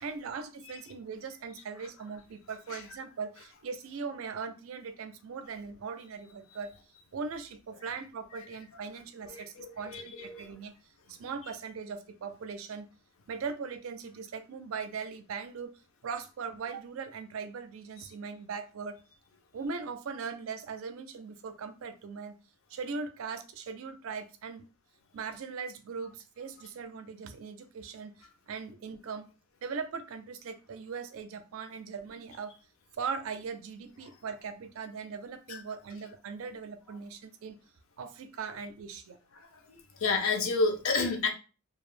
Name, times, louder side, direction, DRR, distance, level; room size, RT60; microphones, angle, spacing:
voice 1, 0.0-6.7 7.1-10.7 11.1-12.9 13.3-15.7 16.0-19.0 19.5-22.4 22.7-24.6 25.1-28.1 28.5-29.3 29.6-32.5 33.0-37.6 38.0-39.2, right 5 dB, 80° right, 9 dB, 0.4 m, -39 dB
voice 2, 9.2-10.5 35.5-35.6 39.7-41.3, left 4 dB, 75° left, 5 dB, 0.5 m, -30 dB
2.4 x 2.0 x 3.1 m, 0.34 s
head